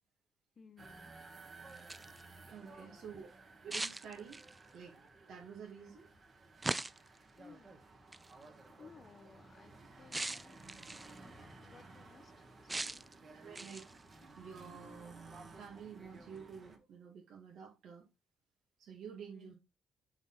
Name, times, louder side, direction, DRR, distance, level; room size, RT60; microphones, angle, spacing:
voice 1, 0.6-1.1 1.6-1.8 2.6-3.3 7.3-7.8 8.3-8.5 8.8-10.6 11.2-13.1 19.3-19.5, left 5 dB, 40° left, 0.8 m, -60 dB
sound 1, 0.8-16.8, right 3 dB, 40° right, 2.0 m, -56 dB
sound 2, 1.7-2.2 3.7-4.7 6.6-7.2 8.1-8.3 10.1-11.2 12.7-13.1 13.6-14.0, right 2 dB, 20° right, 0.4 m, -40 dB
voice 2, 2.5-3.3 3.6-5.0 5.3-6.1 8.8-8.9 11.3-11.4 13.3-13.9 14.4-18.1 18.8-19.5, right 7 dB, 70° right, 2.1 m, -50 dB
6.8 x 4.3 x 4.0 m
cardioid pair, 90°, 0 cm